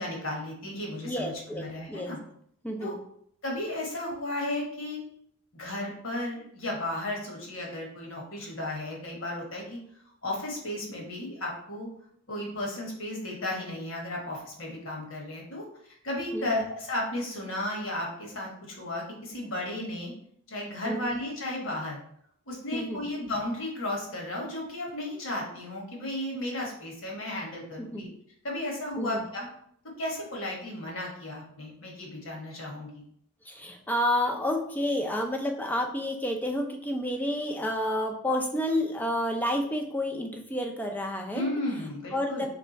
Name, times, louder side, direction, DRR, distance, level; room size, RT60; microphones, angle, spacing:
voice 1, 0.0-2.2 2.8-3.0 3.4-5.0 5.5-9.8 10.2-11.9 12.3-15.6 16.0-20.1 20.5-22.0 22.5-28.1 28.4-29.5 30.0-33.0 41.3-42.5, left 1 dB, 60° left, -2 dB, 1.3 m, -34 dB
voice 2, 1.0-2.1 2.6-3.0 16.3-16.6 20.8-21.1 22.7-23.0 27.8-28.0 29.0-29.2 33.5-41.5 42.1-42.4, left 1 dB, 10° left, 2 dB, 0.5 m, -30 dB
3.6 x 3.3 x 4.1 m, 0.68 s
head